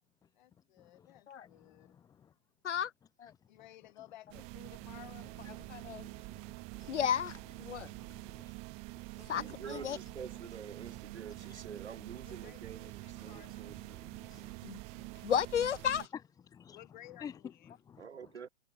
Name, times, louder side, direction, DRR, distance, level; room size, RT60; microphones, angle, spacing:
voice 1, 0.3-2.0 3.5-5.4 9.1-9.7 12.2-13.8 15.1-15.2 16.7-17.7, left 14 dB, 40° left, 6.8 m, -56 dB
voice 2, 1.5-2.3 5.7-7.0 7.7-8.5 13.1-13.3 13.6-15.1 16.5-16.8 17.2-17.3 17.7-18.1, left 8 dB, 10° left, 2.2 m, -54 dB
sound 1, 4.3-16.1, right 29 dB, 20° right, 0.9 m, -47 dB
voice 3, 5.7-6.1 6.9-7.9 9.3-9.4 9.7-10.0 14.6-14.8 15.2-16.1, left 8 dB, 85° left, 0.6 m, -33 dB
voice 4, 9.3-14.0 18.0-18.5, right 7 dB, 70° right, 2.3 m, -47 dB
hypercardioid pair, 140°, 34 cm